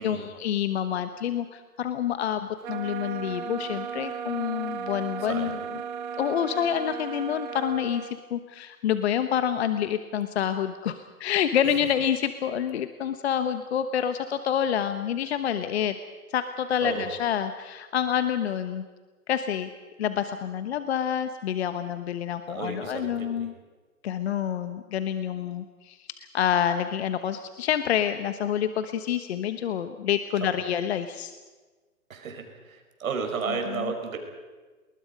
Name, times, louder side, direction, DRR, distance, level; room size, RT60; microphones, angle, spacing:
voice 1, 0.0-5.8 6.2-16.0 16.3-18.8 19.3-19.7 20.0-23.5 24.0-26.1 26.3-31.4 33.5-33.9, left 9 dB, 45° left, 10 dB, 1.1 m, -28 dB
sound 1, 2.6-8.2, right 6 dB, 35° right, 1.4 m, -35 dB
voice 2, 22.5-23.5 32.1-32.4 32.7-34.2, right 5 dB, 65° right, 4 dB, 5.3 m, -32 dB
30.0 x 20.0 x 5.3 m, 1.3 s
hypercardioid pair, 145°, 45 cm